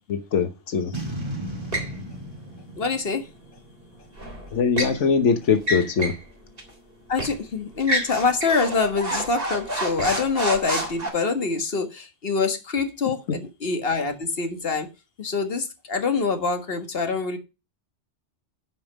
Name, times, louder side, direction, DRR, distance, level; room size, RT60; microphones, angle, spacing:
voice 1, 0.1-0.9 4.5-6.2, left 5 dB, 90° left, 1.3 m, -22 dB
Boom, 0.9-4.3, right 1 dB, 25° right, 2.5 m, -35 dB
sound 1, 1.7-2.0 4.2-5.0 5.6-6.2 6.6-6.7 7.2-7.4 7.8-11.1, right 1 dB, 50° right, 3.8 m, -28 dB
voice 2, 2.8-3.3 7.1-14.9 15.2-17.4, left 4 dB, 55° left, 1.8 m, -25 dB
10.5 x 5.4 x 6.2 m
omnidirectional pair, 1.2 m